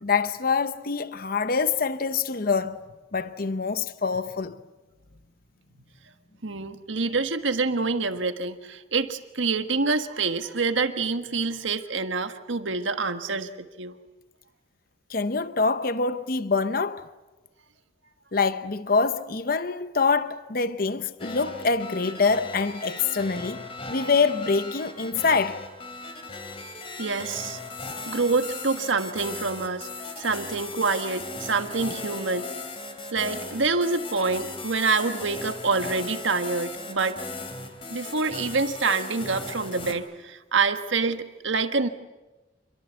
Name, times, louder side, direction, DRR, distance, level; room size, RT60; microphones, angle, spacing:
voice 1, 0.0-2.8 3.1-4.6 15.1-17.1 18.3-25.6, left 4 dB, 50° left, 0.8 m, -25 dB
voice 2, 6.4-14.0 27.0-27.6 28.1-29.9 30.2-32.5 33.1-37.2 37.9-41.9, right 4 dB, 85° right, 1.6 m, -26 dB
sound 1, 21.2-39.9, left 3 dB, 30° left, 3.1 m, -38 dB
27.0 x 23.0 x 8.2 m
head